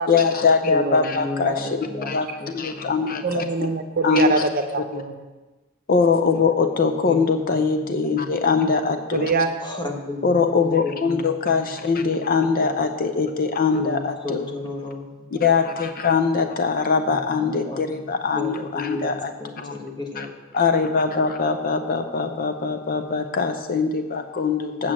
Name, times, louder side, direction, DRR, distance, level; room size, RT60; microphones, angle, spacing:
voice 1, 0.1-1.7 2.1-2.3 2.5-3.4 4.0-4.5 4.9-5.0 5.9-9.3 10.2-14.5 15.3-19.3 19.6-19.8 20.2-20.3 20.5-24.9, left 5 dB, 40° left, 8 dB, 0.6 m, -22 dB
voice 2, 0.6-2.1 2.4-2.6 2.8-2.9 3.3-3.4 7.0-7.6 8.0-8.3 9.6-11.4 11.6-11.7 12.6-12.7 13.7-15.4 17.1-18.0 18.3-20.3 24.8-24.9, left 2 dB, 20° left, 2 dB, 1.2 m, -33 dB
voice 3, 3.2-5.2 9.1-9.5, right 3 dB, 45° right, 6 dB, 0.8 m, -24 dB
8.3 x 6.1 x 7.4 m, 1.2 s
head